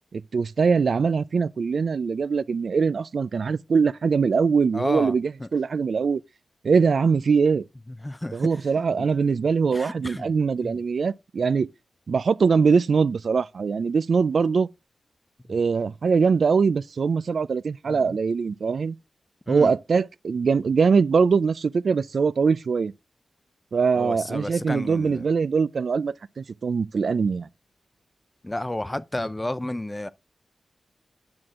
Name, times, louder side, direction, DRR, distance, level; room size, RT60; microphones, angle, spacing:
voice 1, 0.1-6.2 6.6-7.6 8.3-11.7 12.1-14.7 15.5-19.0 19.5-22.9 23.7-27.5, right 5 dB, 70° right, 0.4 m, -22 dB
voice 2, 4.7-5.1 5.4-5.5 7.9-8.5 8.8-9.1 9.7-10.3 10.6-10.8 17.9-18.2 19.5-19.7 24.0-25.2 28.4-30.1, left 1 dB, 15° left, 0.5 m, -32 dB
8.7 x 6.1 x 3.7 m
wide cardioid pair, 80°, 0 cm